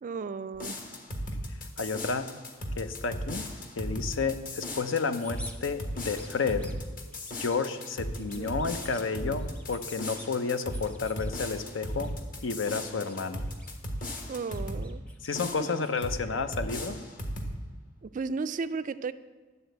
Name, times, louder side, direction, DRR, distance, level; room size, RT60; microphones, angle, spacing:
voice 1, 0.0-0.8 8.2-8.5 14.3-15.0 15.7-15.8 18.0-19.1, right 4 dB, 40° right, 0.3 m, -34 dB
sound 1, 0.5-14.9 15.3-16.2 16.5-17.6, equal, 45° left, 1.3 m, -37 dB
voice 2, 1.8-2.3 2.8-3.5 3.8-6.7 7.3-12.1 12.4-13.4 15.2-17.0, left 4 dB, 75° left, 0.7 m, -31 dB
sound 2, 4.9-5.6 5.9-6.7 7.1-7.9 8.2-9.1 9.4-10.3 10.7-11.3 11.9-12.1 12.4-13.7 14.0-16.1, left 1 dB, 5° left, 0.8 m, -50 dB
12.0 x 4.1 x 7.9 m
head